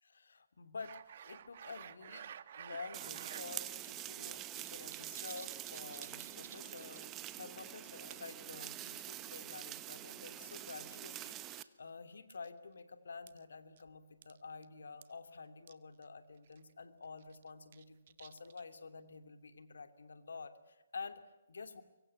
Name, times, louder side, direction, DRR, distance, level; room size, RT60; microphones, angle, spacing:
voice 1, 0.0-21.2 21.5-21.8, left 4 dB, 75° left, 10 dB, 2.8 m, -50 dB
sound 1, 0.8-3.5 3.8-3.9 4.2-7.2 7.5-7.7 8.1-8.4 8.9-9.7 10.5-11.2 11.5-11.7 12.3-12.5 13.3-13.4 13.8-13.9 14.2-14.4 14.6-14.7 15.0-15.1 15.7-15.8 16.0-16.1 16.5-16.7 17.2-18.8, right 9 dB, 50° right, 1.4 m, -52 dB
sound 2, 2.9-11.6, right 14 dB, 20° right, 1.2 m, -46 dB
sound 3, 6.2-12.4, left 5 dB, 55° left, 3.1 m, -69 dB
25.0 x 23.0 x 9.8 m, 1.1 s
figure-of-eight pair, 140°, 0 cm